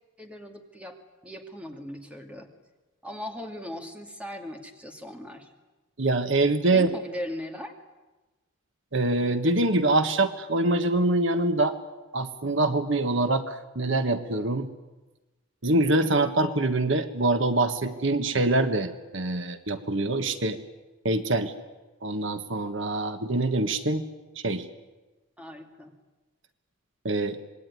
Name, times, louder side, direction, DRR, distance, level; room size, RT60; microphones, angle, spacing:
voice 1, 0.2-1.0 1.2-2.5 3.0-5.5 6.7-7.7 25.4-25.9, left 1 dB, 5° right, 3 dB, 2.5 m, -38 dB
voice 2, 6.0-6.9 8.9-11.8 12.1-14.7 15.6-20.6 21.0-21.5 22.0-24.0 24.4-24.7 27.0-27.4, right 2 dB, 65° right, 9 dB, 1.5 m, -24 dB
26.5 x 21.0 x 9.8 m, 1.2 s
head